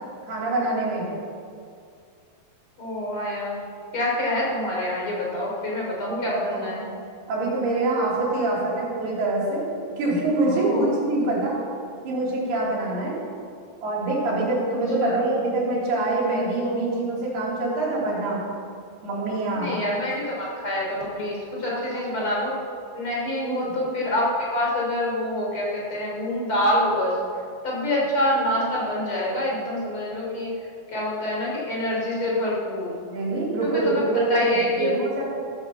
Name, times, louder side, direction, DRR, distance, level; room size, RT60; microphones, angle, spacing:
voice 1, 0.2-1.1 6.0-6.9 7.3-9.7 10.0-11.6 12.0-13.2 13.8-18.4 19.0-19.8 21.9-22.1 23.3-23.7 33.1-35.2, right 2 dB, 75° right, -4 dB, 5.3 m, -25 dB
voice 2, 2.8-3.6 3.9-6.9 10.5-10.9 15.0-15.2 19.5-22.6 22.9-27.2 27.6-30.5 30.9-33.0 33.6-34.0 34.3-35.0, left 1 dB, 35° left, -3 dB, 3.7 m, -26 dB
15.5 x 8.9 x 7.2 m, 2.3 s
omnidirectional pair, 4.6 m